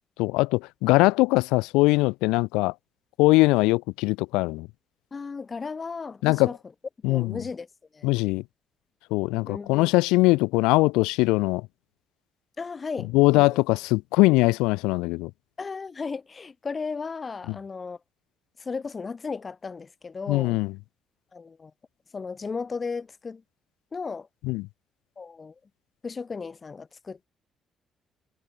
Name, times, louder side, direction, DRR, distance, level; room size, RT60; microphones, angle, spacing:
voice 1, 0.2-2.7 3.2-4.7 6.2-6.5 7.0-7.4 8.0-8.4 9.1-11.7 13.1-15.3 17.5-17.6 20.3-20.7 24.4-24.7, left 23 dB, 90° left, 0.9 m, -21 dB
voice 2, 5.1-6.6 7.1-7.7 7.9-8.1 9.5-9.9 12.6-13.6 15.6-18.0 18.6-20.6 21.3-21.7 22.1-23.4 23.9-24.3 25.2-25.5 26.0-27.3, left 4 dB, 40° left, 7.6 m, -35 dB
supercardioid pair, 60°, 0 cm